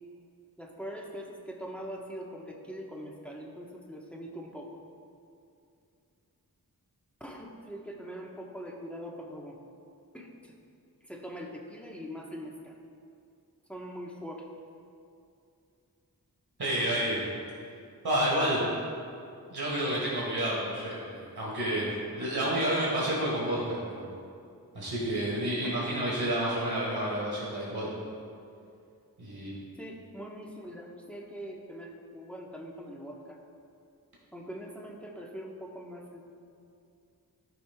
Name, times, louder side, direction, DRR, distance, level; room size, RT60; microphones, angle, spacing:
voice 1, 0.6-4.8 7.2-9.6 10.1-10.5 11.0-12.8 13.7-14.5 18.6-18.7 25.6-25.8 29.8-33.4 34.3-36.2, equal, 5° left, -1 dB, 1.2 m, -42 dB
voice 2, 16.6-17.3 18.0-18.6 19.5-24.1 24.7-27.9 29.2-29.5, right 1 dB, 90° right, -6 dB, 1.9 m, -30 dB
14.0 x 6.5 x 2.3 m, 2.5 s
wide cardioid pair, 45°, 37 cm